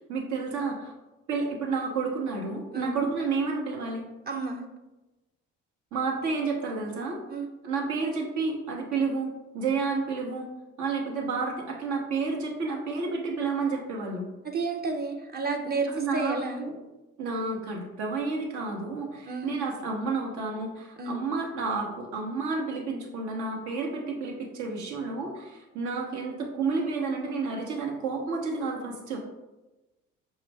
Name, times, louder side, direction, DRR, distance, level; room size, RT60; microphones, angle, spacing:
voice 1, 0.1-0.9 1.3-4.1 5.9-7.2 7.6-10.5 10.8-14.2 15.9-16.7 17.2-29.2, right 4 dB, 65° right, 0 dB, 1.0 m, -30 dB
voice 2, 2.7-3.1 4.3-4.6 7.3-7.5 14.4-16.6 19.3-19.5 21.0-21.2, right 3 dB, 30° right, 3 dB, 0.7 m, -31 dB
5.4 x 2.4 x 3.3 m, 1.1 s
hypercardioid pair, 60°, 31 cm